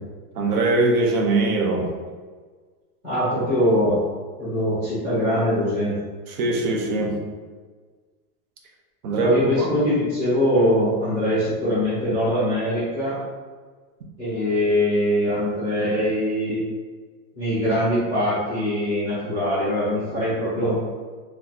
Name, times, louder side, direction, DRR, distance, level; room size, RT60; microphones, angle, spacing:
voice 1, 0.3-1.9 6.3-7.2 9.0-9.7, right 2 dB, 65° right, 0 dB, 0.9 m, -21 dB
voice 2, 3.0-4.0 4.4-5.9 9.2-13.2 14.2-16.6 17.4-20.8, equal, 5° right, -15 dB, 0.5 m, -22 dB
2.8 x 2.3 x 3.7 m, 1.5 s
supercardioid pair, 180°, 48 cm